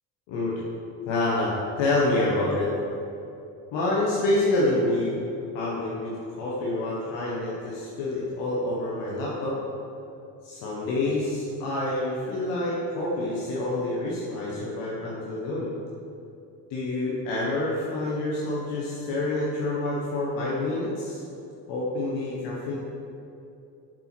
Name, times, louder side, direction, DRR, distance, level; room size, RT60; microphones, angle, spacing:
voice 1, 0.3-0.6 1.1-2.7 3.7-5.3 5.5-6.1 6.4-9.6 10.4-15.7 16.7-21.2 21.7-22.7, left 2 dB, 70° left, -5 dB, 1.5 m, -27 dB
7.3 x 5.3 x 6.1 m, 2.7 s
hypercardioid pair, 60°, 45 cm